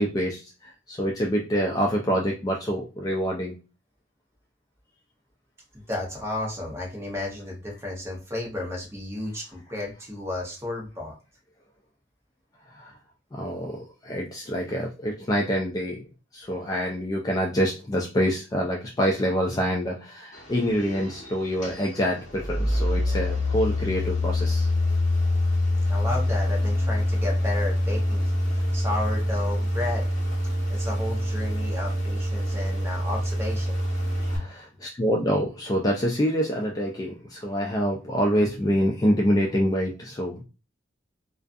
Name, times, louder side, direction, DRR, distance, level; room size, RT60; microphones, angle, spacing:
voice 1, 0.0-3.5 12.7-12.9 13.3-16.1 16.3-24.7 34.3-40.4, equal, 20° left, 0 dB, 0.3 m, -26 dB
voice 2, 5.7-11.1 25.9-30.1 30.7-33.8, left 2 dB, 15° right, -1 dB, 0.8 m, -33 dB
sound 1, 20.3-34.4, left 1 dB, 40° left, 1.0 m, -26 dB
2.4 x 2.3 x 2.4 m, 0.32 s
head